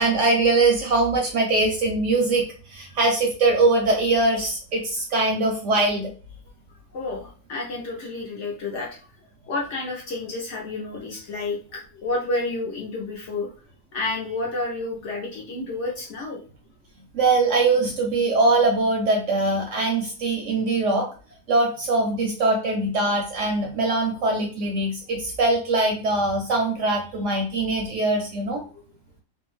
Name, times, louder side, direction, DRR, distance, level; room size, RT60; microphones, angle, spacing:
voice 1, 0.0-6.1 17.1-21.1 21.5-28.6, right 2 dB, 70° right, 1 dB, 0.7 m, -22 dB
voice 2, 6.9-9.0 9.4-13.5 13.9-16.4, left 2 dB, 65° left, -2 dB, 0.8 m, -30 dB
2.6 x 2.2 x 3.0 m, 0.39 s
omnidirectional pair, 1.7 m